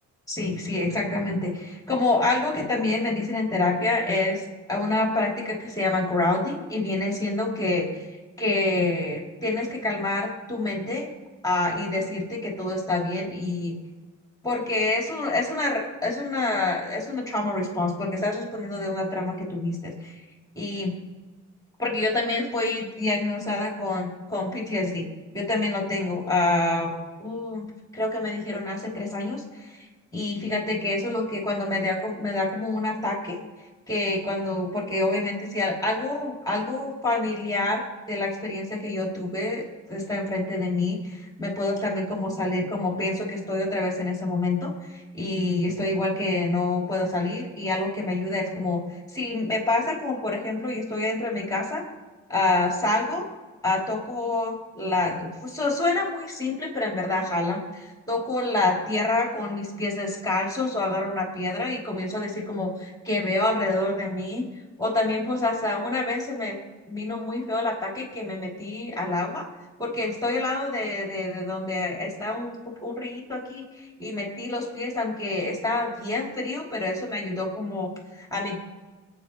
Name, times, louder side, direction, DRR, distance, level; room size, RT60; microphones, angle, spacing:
voice 1, 0.3-8.1 8.4-11.1 11.4-13.8 14.4-20.1 20.5-20.9 21.8-25.1 25.3-26.9 27.2-33.4 33.9-37.8 38.1-39.6 39.9-51.8 52.3-53.3 53.6-64.5 64.8-66.6 66.9-69.4 69.8-78.6, left 2 dB, 10° left, -1 dB, 3.0 m, -27 dB
24.0 x 9.5 x 3.1 m, 1.3 s
cardioid pair, 90°, 30 cm